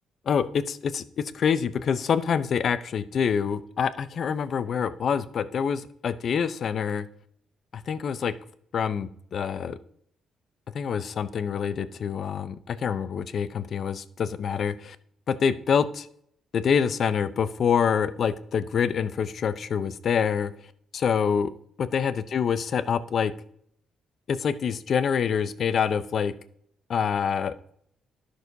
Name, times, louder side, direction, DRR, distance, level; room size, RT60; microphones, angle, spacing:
voice 1, 0.3-7.1 7.7-8.3 8.7-9.8 10.7-15.0 15.3-16.1 16.5-20.5 20.9-21.5 21.8-23.3 24.3-26.3 26.9-27.7, left 7 dB, 55° left, 13 dB, 0.5 m, -26 dB
11.5 x 6.3 x 2.7 m, 0.68 s
cardioid pair, 90°, 0 cm